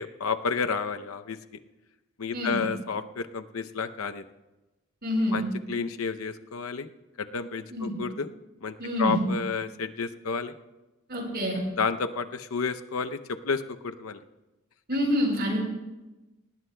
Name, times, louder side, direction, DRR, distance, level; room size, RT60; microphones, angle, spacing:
voice 1, 0.0-1.4 2.2-4.2 5.3-6.9 7.2-8.3 8.6-10.5 11.8-13.2 13.4-14.2, left 5 dB, 85° left, 9 dB, 0.7 m, -31 dB
voice 2, 5.0-5.4 7.7-7.9 8.8-9.2 11.1-11.6 14.9-15.6, equal, 50° right, 0 dB, 5.0 m, -27 dB
19.5 x 19.0 x 2.2 m, 1.1 s
head